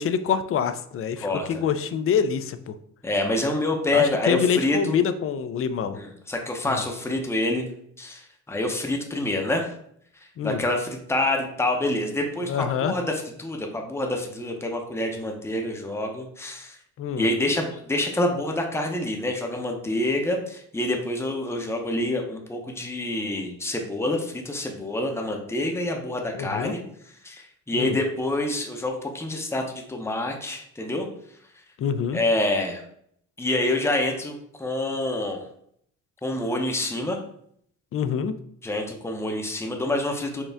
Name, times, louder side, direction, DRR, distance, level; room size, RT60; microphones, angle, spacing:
voice 1, 0.0-2.8 3.9-6.0 6.6-6.8 10.4-10.6 12.5-12.9 17.0-17.3 26.3-26.7 27.7-28.0 31.8-32.2 37.9-38.3, left 7 dB, 45° left, 11 dB, 0.4 m, -26 dB
voice 2, 1.2-1.7 3.0-5.0 5.9-7.7 8.0-9.8 10.4-16.8 17.2-26.8 27.2-31.1 32.1-32.8 33.4-35.4 36.2-37.2 38.6-40.4, left 1 dB, 10° left, 2 dB, 0.7 m, -27 dB
4.4 x 2.4 x 3.4 m, 0.68 s
cardioid pair, 90°, 30 cm